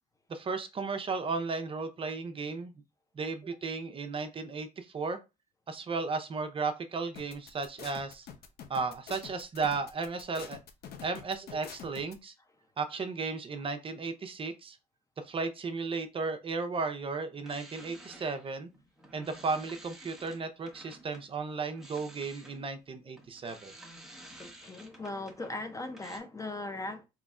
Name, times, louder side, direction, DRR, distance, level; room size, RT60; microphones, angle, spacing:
voice 1, 0.3-2.7 3.1-5.2 5.7-8.3 8.7-10.6 11.0-12.3 12.8-14.8 15.2-18.7 19.1-23.7, right 4 dB, 35° right, 0.6 m, -34 dB
sound 1, 7.2-12.1, left 8 dB, 65° left, 0.7 m, -46 dB
sound 2, 17.3-21.3 21.7-26.2, right 1 dB, 5° right, 0.9 m, -52 dB
voice 2, 24.4-27.1, left 2 dB, 20° left, 0.5 m, -39 dB
4.0 x 3.0 x 2.4 m
cardioid pair, 110°, 17 cm